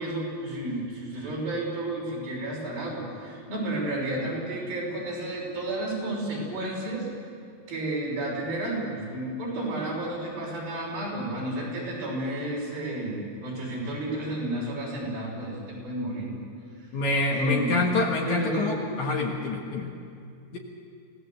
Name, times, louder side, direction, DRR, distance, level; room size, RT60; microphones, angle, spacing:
voice 1, 0.0-7.1 7.7-16.4 17.3-17.8 18.3-18.7, right 1 dB, 65° right, -3 dB, 7.9 m, -31 dB
voice 2, 16.9-19.9 20.5-20.6, left 3 dB, 55° left, 1 dB, 2.5 m, -26 dB
26.5 x 18.0 x 7.9 m, 2.4 s
omnidirectional pair, 4.6 m